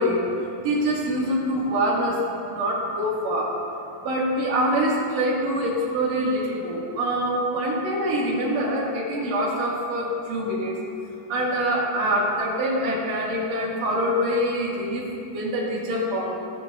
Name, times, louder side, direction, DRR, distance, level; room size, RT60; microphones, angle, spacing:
voice 1, 0.0-2.2 2.5-3.5 4.0-10.8 11.3-16.3, equal, 50° right, -6 dB, 2.9 m, -25 dB
18.5 x 6.8 x 2.9 m, 2.9 s
omnidirectional pair, 4.5 m